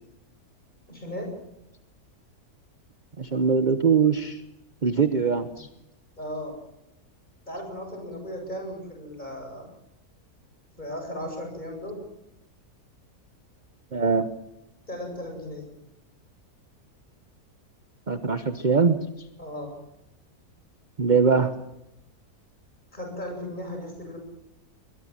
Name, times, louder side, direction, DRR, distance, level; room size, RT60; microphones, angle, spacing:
voice 1, 0.9-1.3 5.5-5.6 6.2-6.6 7.5-9.7 10.8-12.0 14.9-15.7 19.4-19.8 22.9-24.2, left 1 dB, 30° left, 2 dB, 8.2 m, -36 dB
voice 2, 3.2-4.4 4.8-5.7 13.9-14.3 18.1-19.0 21.0-21.6, right 5 dB, 35° right, 10 dB, 1.1 m, -22 dB
22.0 x 21.5 x 7.5 m, 0.86 s
omnidirectional pair, 1.6 m